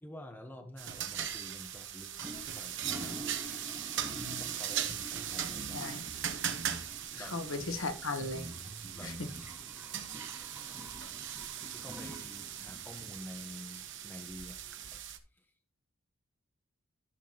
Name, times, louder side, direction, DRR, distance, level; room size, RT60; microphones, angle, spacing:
voice 1, 0.0-3.3 4.4-5.9 7.1-7.4 8.9-9.2 10.7-10.9 11.7-14.6, left 1 dB, 10° left, 1.0 m, -49 dB
sound 1, 0.8-15.2, right 10 dB, 60° right, 1.1 m, -39 dB
Toilet flush, 2.2-15.0, right 1 dB, 10° right, 1.3 m, -49 dB
sound 2, 4.0-4.4 4.9-5.0 5.5-5.8 6.1-6.9 7.6-7.7 8.2-9.4, equal, 30° right, 1.9 m, -46 dB
voice 2, 5.7-6.0 7.1-8.5 9.0-9.3, left 3 dB, 70° left, 1.2 m, -37 dB
13.0 x 5.9 x 2.9 m
head